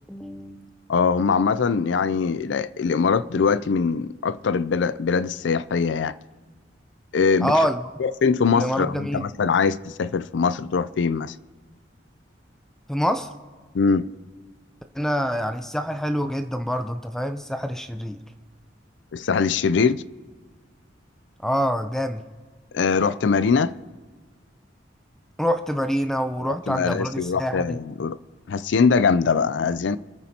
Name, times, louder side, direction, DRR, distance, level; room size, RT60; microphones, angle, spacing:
voice 1, 0.1-0.7 7.4-7.8 8.5-9.3 12.9-13.3 15.0-18.2 21.4-22.2 25.4-27.8, equal, 5° left, 0.5 m, -26 dB
voice 2, 0.9-6.1 7.1-7.5 8.0-11.3 13.7-14.1 19.1-20.0 22.7-23.7 26.5-28.2 28.5-30.0, left 5 dB, 70° left, 0.4 m, -22 dB
27.0 x 9.5 x 2.8 m
head